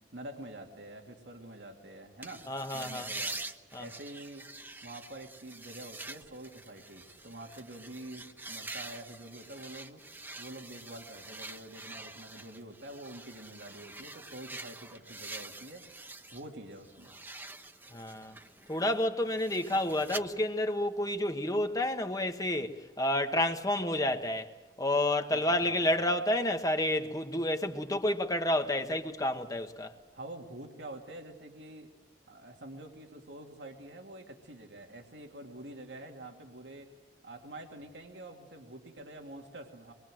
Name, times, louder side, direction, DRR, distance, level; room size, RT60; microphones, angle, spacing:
voice 1, 0.1-2.5 2.7-3.4 3.8-4.5 4.8-10.0 10.4-15.9 16.3-17.2 25.3-26.1 30.1-31.9 32.3-36.9 37.2-39.9, right 1 dB, 85° right, 2.5 m, -46 dB
sound 1, 2.2-16.4 16.8-20.2, right 2 dB, 10° right, 1.1 m, -45 dB
voice 2, 2.5-3.1 3.7-3.9 17.9-18.4 18.7-24.5 24.8-29.9, left 1 dB, 20° left, 1.3 m, -30 dB
25.0 x 22.5 x 7.7 m
head